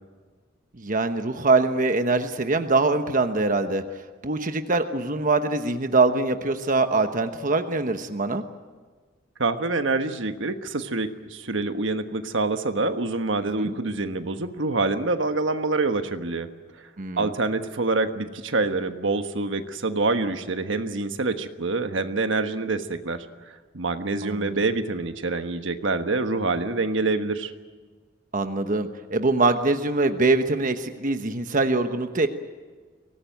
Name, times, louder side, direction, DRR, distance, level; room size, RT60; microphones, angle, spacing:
voice 1, 0.8-3.8 4.2-8.4 13.6-13.7 17.0-17.3 24.2-24.5 28.3-32.3, right 3 dB, 45° right, 7 dB, 1.1 m, -23 dB
voice 2, 9.4-16.5 17.2-23.2 23.7-27.5, right 3 dB, 75° right, 8 dB, 1.4 m, -26 dB
24.0 x 18.0 x 9.2 m, 1.4 s
head